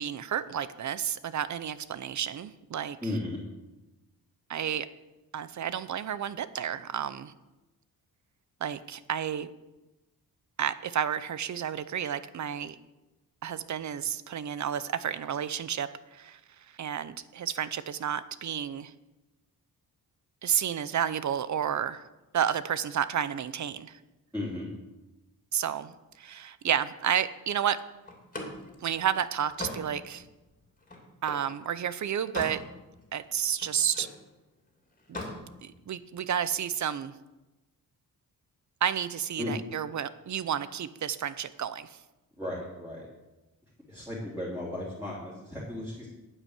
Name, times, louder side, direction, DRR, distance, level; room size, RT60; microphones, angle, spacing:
voice 1, 0.0-3.0 4.5-4.9 5.3-7.3 8.6-9.5 10.6-12.8 13.4-16.4 16.8-18.9 20.4-22.1 22.3-24.0 25.5-27.8 28.8-30.2 31.2-32.6 33.1-34.1 35.1-35.2 35.6-37.1 38.8-41.9, right 9 dB, 50° right, 15 dB, 0.7 m, -31 dB
voice 2, 3.0-3.4 24.3-24.7 39.4-39.5 42.4-43.1 43.9-46.1, left 1 dB, 5° right, -7 dB, 3.5 m, -35 dB
Slam, 28.1-31.5 32.0-32.7 33.0-34.2 35.0-35.4, left 2 dB, 20° left, 2.8 m, -40 dB
9.9 x 9.1 x 8.2 m, 1.0 s
wide cardioid pair, 150°, 36 cm